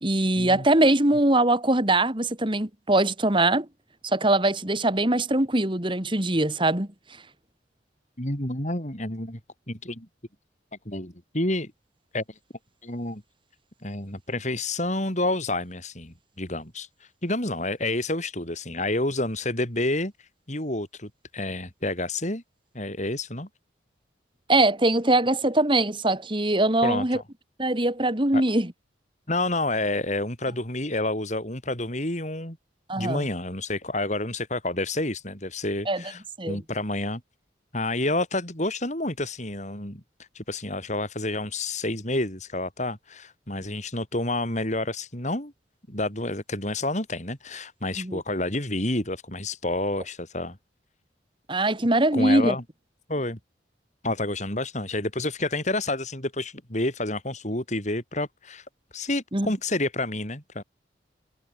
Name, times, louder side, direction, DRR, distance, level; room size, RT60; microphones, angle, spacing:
voice 1, 0.0-3.7 4.0-6.9 24.5-27.2 27.6-28.7 32.9-33.2 35.9-36.0 36.4-36.6 48.0-48.2 51.5-52.6 59.3-59.5, right 2 dB, 25° right, 2.3 m, -22 dB
voice 2, 8.2-9.4 9.7-10.1 10.9-11.7 12.1-12.2 12.8-13.2 13.8-22.4 22.7-23.5 26.8-27.2 28.3-28.4 29.3-32.6 33.0-37.2 37.7-40.0 40.3-45.5 45.9-50.6 52.1-52.6 53.1-53.4 54.0-58.7 58.9-60.6, left 2 dB, 40° left, 5.7 m, -29 dB
head